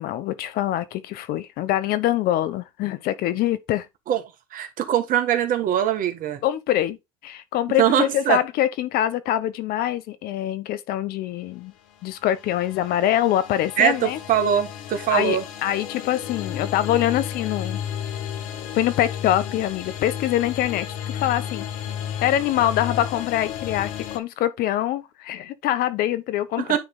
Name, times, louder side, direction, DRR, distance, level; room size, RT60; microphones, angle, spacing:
voice 1, 0.0-3.9 6.4-7.0 7.2-11.7 12.0-14.2 15.1-17.8 18.7-20.9 21.1-21.6 22.2-26.8, left 12 dB, 60° left, 0.9 m, -24 dB
voice 2, 4.5-6.4 7.8-8.4 13.8-15.4 26.6-26.8, right 10 dB, 50° right, 1.5 m, -22 dB
sound 1, 11.9-24.2, left 9 dB, 80° left, 1.3 m, -33 dB
9.3 x 3.4 x 4.0 m
supercardioid pair, 85°, 17 cm